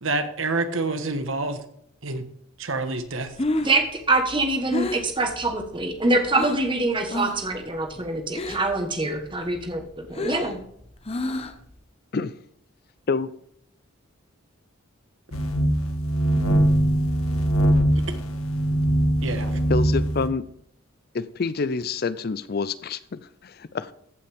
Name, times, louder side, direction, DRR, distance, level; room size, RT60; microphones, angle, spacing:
voice 1, 0.0-1.6 2.0-2.2 2.6-3.3 19.2-19.6, right 3 dB, 70° right, 8 dB, 1.3 m, -27 dB
Breathing, 3.3-6.7 7.1-7.5 7.8-8.8 9.2-11.7, left 1 dB, 30° left, 0.7 m, -30 dB
voice 2, 3.6-10.6, right 2 dB, 25° right, 5 dB, 1.4 m, -24 dB
sound 1, 15.3-20.3, right 1 dB, 85° left, 1.3 m, -22 dB
voice 3, 19.7-20.4 21.1-23.9, left 4 dB, 45° left, 16 dB, 0.4 m, -27 dB
15.0 x 5.7 x 3.5 m, 0.70 s
head